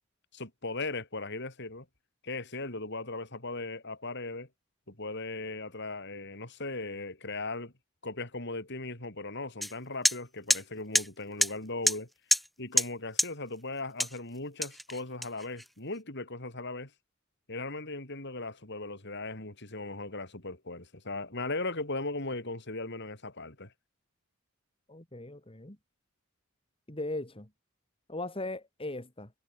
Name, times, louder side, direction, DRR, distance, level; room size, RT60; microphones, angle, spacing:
voice 1, 0.3-1.9 2.2-4.5 4.9-7.7 8.0-12.1 12.6-16.9 17.5-23.7, left 2 dB, 60° left, 6.2 m, -38 dB
sound 1, 9.6-9.7 10.0-10.2 10.5-10.6 10.9-11.1 11.4-11.5 11.9-12.0 12.3-12.5 12.8-12.9 13.2-13.3 14.0-14.2 14.6-15.6, equal, ahead, 0.6 m, -26 dB
voice 2, 24.9-25.8 26.9-27.5 28.1-29.3, left 2 dB, 25° left, 3.2 m, -38 dB
head